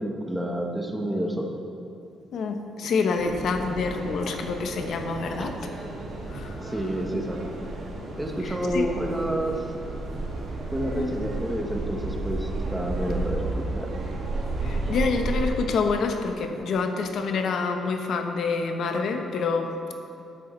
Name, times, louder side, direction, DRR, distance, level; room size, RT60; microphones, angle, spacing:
voice 1, 0.0-1.5 3.6-3.7 6.6-7.5 8.2-9.6 10.7-13.9, right 1 dB, 5° right, 1 dB, 1.1 m, -29 dB
voice 2, 2.3-5.7 6.3-6.7 8.4-8.9 10.9-11.1 14.6-19.9, left 4 dB, 65° left, 5 dB, 0.8 m, -27 dB
sound 1, 3.1-15.5, right 2 dB, 60° right, 1.7 m, -32 dB
11.5 x 8.4 x 3.2 m, 2.7 s
cardioid pair, 90°, 0 cm